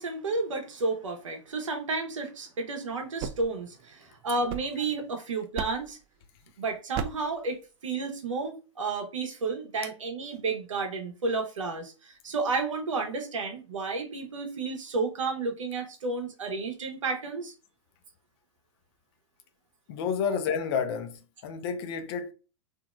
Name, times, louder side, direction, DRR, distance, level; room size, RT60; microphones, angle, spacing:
voice 1, 0.0-6.0 6.6-17.5, right 3 dB, 85° right, 0.9 m, -32 dB
sound 1, 2.9-5.1 5.5-6.0 6.9-7.4, right 8 dB, 35° right, 0.4 m, -37 dB
voice 2, 19.9-22.3, left 6 dB, 55° left, 0.7 m, -30 dB
2.9 x 2.7 x 2.3 m
hypercardioid pair, 105°, 16 cm